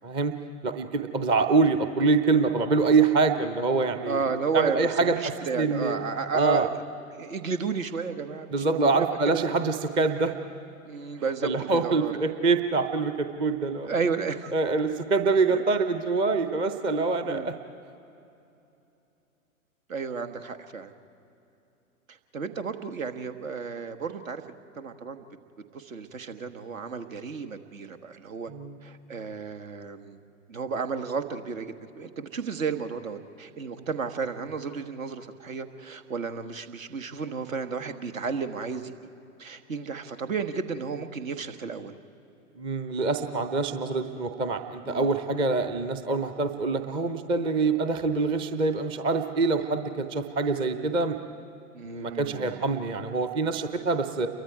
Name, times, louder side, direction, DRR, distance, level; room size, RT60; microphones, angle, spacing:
voice 1, 0.0-0.3 0.6-4.3 4.5-6.0 6.3-6.7 8.5-10.3 11.4-13.9 14.5-17.5 28.5-28.8 42.6-51.2 51.8-54.3, right 4 dB, 10° right, 8 dB, 0.5 m, -25 dB
voice 2, 4.0-6.8 7.1-9.7 10.8-12.1 13.8-14.5 15.5-15.6 17.2-17.5 19.9-20.9 22.1-24.4 24.8-25.2 25.7-28.5 28.8-30.2 30.5-38.9 39.4-41.9 44.8-45.1 51.7-52.6, right 5 dB, 70° right, 7 dB, 1.4 m, -33 dB
28.5 x 23.0 x 4.7 m, 2.8 s
figure-of-eight pair, 110°, 42 cm